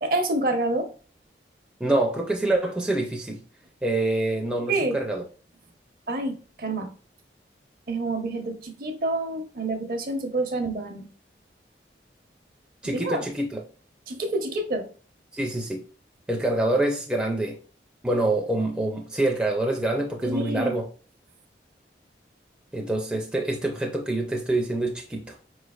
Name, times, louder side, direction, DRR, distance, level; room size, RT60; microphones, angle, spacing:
voice 1, 0.0-0.9 4.7-5.0 6.1-6.9 7.9-11.1 12.9-13.2 14.1-14.9 20.2-20.8, right 2 dB, 50° right, 0.7 m, -28 dB
voice 2, 1.8-3.4 3.8-5.2 12.8-13.6 15.3-15.8 16.3-17.6 18.0-20.8 22.7-25.4, right 2 dB, 5° right, 0.4 m, -26 dB
4.7 x 3.1 x 2.3 m
head